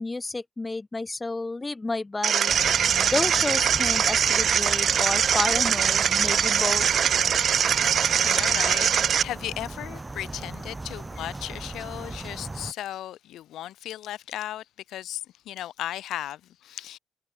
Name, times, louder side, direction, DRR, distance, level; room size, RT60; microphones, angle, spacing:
voice 1, 0.0-2.5 3.1-6.8, left 3 dB, 20° left, 6.4 m, -31 dB
sound 1, 2.2-9.2, right 8 dB, 55° right, 0.7 m, -22 dB
sound 2, 2.5-12.7, right 2 dB, 15° right, 3.2 m, -38 dB
voice 2, 7.7-17.0, left 13 dB, 80° left, 4.3 m, -36 dB
cardioid pair, 90°, 0 cm